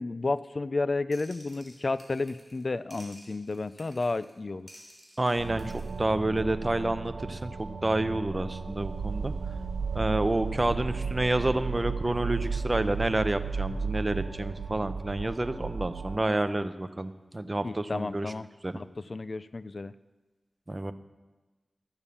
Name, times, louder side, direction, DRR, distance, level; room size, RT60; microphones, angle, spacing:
voice 1, 0.0-4.7 17.6-18.5 18.7-19.9, left 3 dB, 55° left, 16 dB, 0.3 m, -32 dB
sound 1, 1.1-2.6 2.9-4.3 4.7-6.0, equal, 10° left, 3.1 m, -53 dB
voice 2, 5.2-7.5 7.8-9.3 9.9-18.3 18.6-18.7 20.7-20.9, right 2 dB, 30° right, 12 dB, 0.7 m, -29 dB
sound 2, 5.4-16.2, right 5 dB, 85° right, 0.5 m, -34 dB
13.0 x 7.2 x 6.9 m, 1.2 s
wide cardioid pair, 55°, 0 cm